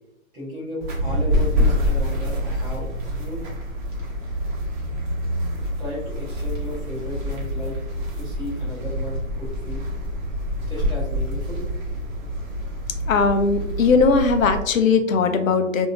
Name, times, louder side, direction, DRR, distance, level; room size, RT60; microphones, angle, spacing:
voice 1, 0.3-2.9 3.2-3.4 5.8-7.8 8.2-9.8 10.7-11.6, left 1 dB, 10° right, -11 dB, 0.4 m, -34 dB
sound 1, 0.8-14.6, equal, 35° right, 1.0 m, -26 dB
voice 2, 13.1-15.9, left 4 dB, 75° left, 8 dB, 0.6 m, -19 dB
2.9 x 2.6 x 2.3 m, 0.87 s
hypercardioid pair, 130°, 41 cm